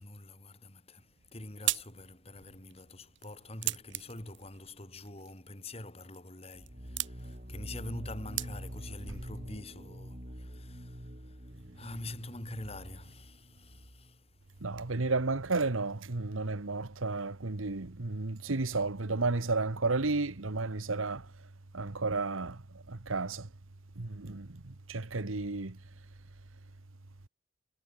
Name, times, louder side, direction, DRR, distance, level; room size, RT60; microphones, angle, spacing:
voice 1, 0.0-14.6, left 2 dB, 30° left, 3.5 m, -46 dB
sound 1, 1.0-9.0, right 16 dB, 65° right, 1.0 m, -40 dB
sound 2, 6.5-14.2, equal, 40° right, 5.7 m, -45 dB
voice 2, 14.6-21.3 21.7-22.6 22.9-23.5 24.0-25.8, right 3 dB, 85° right, 1.3 m, -32 dB
head